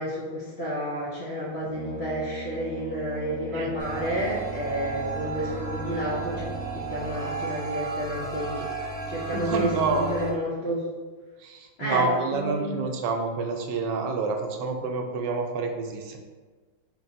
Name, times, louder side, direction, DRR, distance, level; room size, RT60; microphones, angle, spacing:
voice 1, 0.0-10.8 11.8-12.8, equal, 60° left, -7 dB, 0.7 m, -31 dB
Brass instrument, 1.6-7.4, equal, 65° right, 0.5 m, -40 dB
sound 1, 3.8-10.3, right 3 dB, 40° right, 1.2 m, -34 dB
voice 2, 9.3-10.2 11.4-16.2, right 4 dB, 90° right, 4 dB, 1.2 m, -28 dB
4.4 x 3.4 x 2.6 m, 1.4 s
omnidirectional pair, 1.9 m